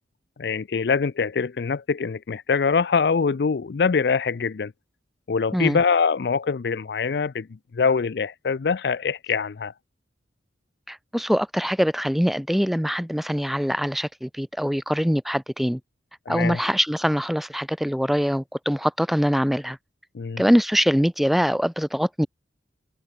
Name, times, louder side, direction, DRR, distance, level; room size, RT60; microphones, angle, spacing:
voice 1, 0.4-4.7 5.3-7.5 7.7-9.7 16.3-16.6 20.1-20.4, left 5 dB, 60° left, 0.4 m, -23 dB
voice 2, 10.9-15.8 16.3-19.8 20.4-22.3, equal, ahead, 0.8 m, -23 dB
head